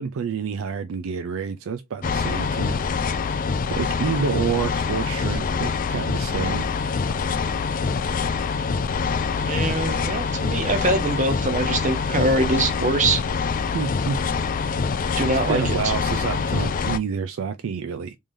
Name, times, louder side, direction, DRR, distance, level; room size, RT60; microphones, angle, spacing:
voice 1, 0.0-2.8 3.7-6.6 13.7-14.2 15.3-18.2, right 6 dB, 60° right, 0.3 m, -28 dB
sound 1, 2.0-17.0, left 5 dB, 40° left, 0.3 m, -25 dB
voice 2, 9.4-13.2 15.2-15.8, right 2 dB, 35° right, 0.8 m, -23 dB
3.6 x 3.2 x 2.6 m
head